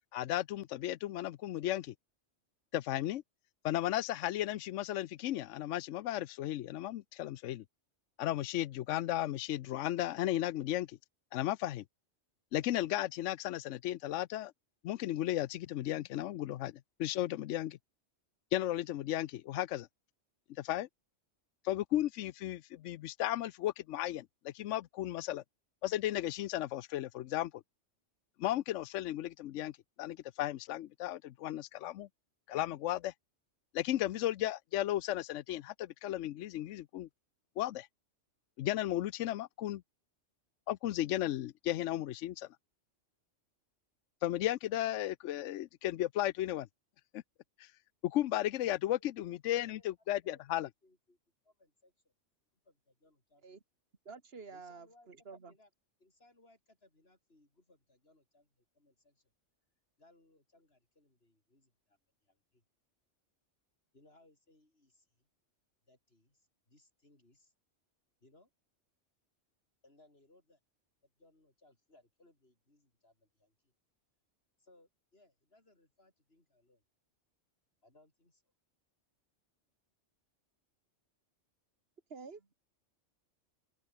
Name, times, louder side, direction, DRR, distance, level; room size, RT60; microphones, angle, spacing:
voice 1, 0.1-1.9 2.7-3.2 3.6-7.6 8.2-11.0 11.3-11.8 12.5-14.5 14.8-16.7 17.0-17.8 18.5-19.9 20.6-20.9 21.6-25.4 25.8-27.6 28.4-29.7 30.0-32.1 32.5-33.1 33.7-37.1 37.6-37.9 38.6-39.8 40.7-42.5 44.2-46.7 47.1-47.2 47.6-47.7 48.0-50.7, left 13 dB, 85° left, 0.9 m, -35 dB
voice 2, 50.2-51.2 51.4-52.1 52.6-53.5 54.5-55.7 56.0-59.3 60.0-62.6 63.9-65.3 65.9-67.5 68.2-68.5 69.8-70.6 71.0-73.7 74.6-76.8 77.8-78.4, left 2 dB, 55° left, 6.1 m, -67 dB
voice 3, 54.1-55.5 82.1-82.5, right 4 dB, 55° right, 2.4 m, -49 dB
open air
omnidirectional pair, 1.2 m